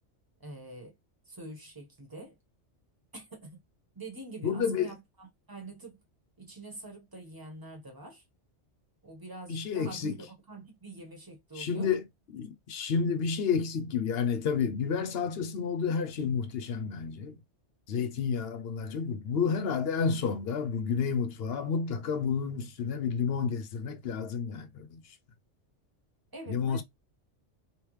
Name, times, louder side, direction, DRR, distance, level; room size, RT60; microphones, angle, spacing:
voice 1, 0.4-0.9 1.3-2.4 3.1-3.6 3.9-6.0 6.4-8.2 9.0-11.9 26.3-26.8, right 2 dB, 20° right, 1.3 m, -45 dB
voice 2, 4.4-4.9 9.5-10.2 11.5-12.0 12.3-17.4 17.9-25.2 26.5-26.8, left 6 dB, 65° left, 0.8 m, -30 dB
3.2 x 3.0 x 3.1 m
omnidirectional pair, 1.2 m